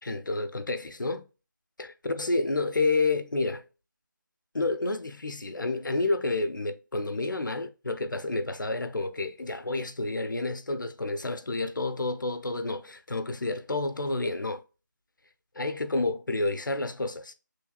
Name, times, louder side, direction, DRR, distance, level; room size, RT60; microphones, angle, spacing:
voice 1, 0.0-1.3 1.8-3.6 4.5-14.6 15.5-17.3, left 3 dB, 75° left, 0.7 m, -29 dB
6.3 x 3.4 x 2.3 m
figure-of-eight pair, 180°, 11 cm